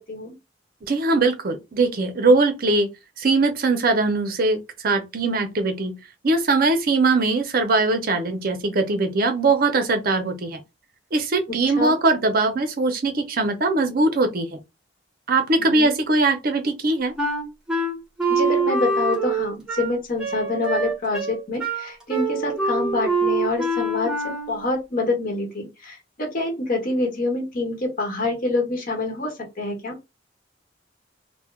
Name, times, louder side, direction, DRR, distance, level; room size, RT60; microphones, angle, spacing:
voice 1, 0.9-2.9 3.2-6.0 6.2-10.6 11.1-14.6 15.3-17.1, right 3 dB, 50° right, 0.6 m, -21 dB
voice 2, 15.6-15.9 18.3-24.1 24.5-30.0, left 2 dB, 50° left, 1.0 m, -26 dB
Wind instrument woodwind instrument, 17.2-24.6, right 3 dB, 5° right, 0.9 m, -25 dB
3.1 x 2.1 x 2.3 m
head